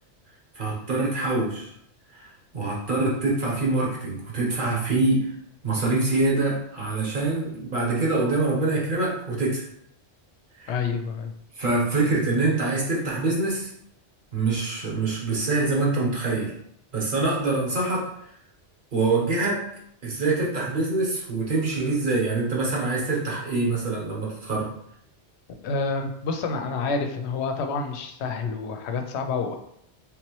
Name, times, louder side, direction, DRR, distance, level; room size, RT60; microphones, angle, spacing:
voice 1, 0.5-1.7 2.1-2.3 2.5-5.3 5.6-9.6 10.6-10.7 11.6-13.7 14.3-16.5 16.9-18.1 18.9-19.7 20.0-24.7, right 3 dB, 50° right, -3 dB, 1.1 m, -25 dB
voice 2, 10.7-11.3 25.6-29.6, left 4 dB, 75° left, 5 dB, 0.8 m, -28 dB
3.6 x 2.9 x 3.0 m, 0.72 s
omnidirectional pair, 1.2 m